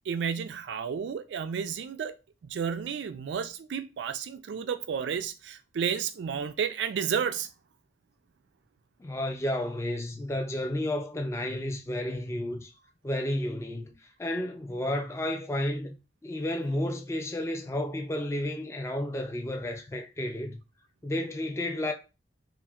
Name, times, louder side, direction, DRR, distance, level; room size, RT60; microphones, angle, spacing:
voice 1, 0.1-2.1 2.4-7.5, right 7 dB, 80° right, 0.3 m, -32 dB
voice 2, 9.0-12.7 13.0-13.9 14.2-15.9 16.2-20.6 21.0-21.9, left 1 dB, 15° left, 0.3 m, -31 dB
2.8 x 2.4 x 2.3 m
head